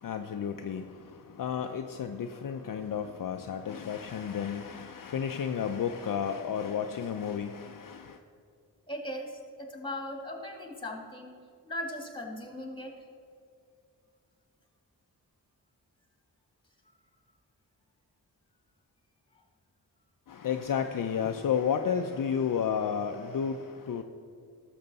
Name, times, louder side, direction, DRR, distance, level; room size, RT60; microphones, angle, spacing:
voice 1, 0.0-0.9 1.4-8.2 20.3-24.0, left 7 dB, 55° left, 0.5 m, -32 dB
voice 2, 8.9-11.3 11.6-13.0, left 1 dB, 10° left, 1.9 m, -38 dB
12.0 x 6.8 x 4.0 m
cardioid pair, 45°, 40 cm